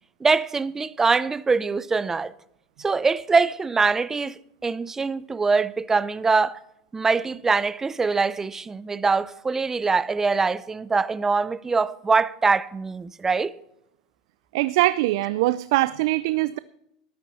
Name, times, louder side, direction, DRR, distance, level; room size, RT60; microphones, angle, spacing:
voice 1, 0.2-2.3 2.8-6.6 6.9-13.5, right 4 dB, 20° right, 0.6 m, -23 dB
voice 2, 14.5-16.6, right 17 dB, 75° right, 0.4 m, -22 dB
14.0 x 12.5 x 4.2 m
supercardioid pair, 105°, 2 cm